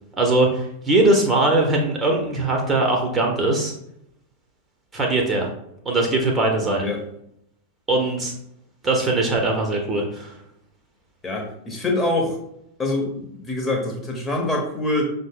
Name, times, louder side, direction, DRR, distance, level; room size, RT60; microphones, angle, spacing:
voice 1, 0.2-3.7 4.9-5.5 5.8-6.9 7.9-8.3 8.8-10.3, right 2 dB, 15° right, 0 dB, 0.9 m, -20 dB
voice 2, 11.2-12.4 12.8-15.1, left 2 dB, 15° left, 1 dB, 1.0 m, -25 dB
5.7 x 2.1 x 3.7 m, 0.77 s
figure-of-eight pair, 90°, 0 cm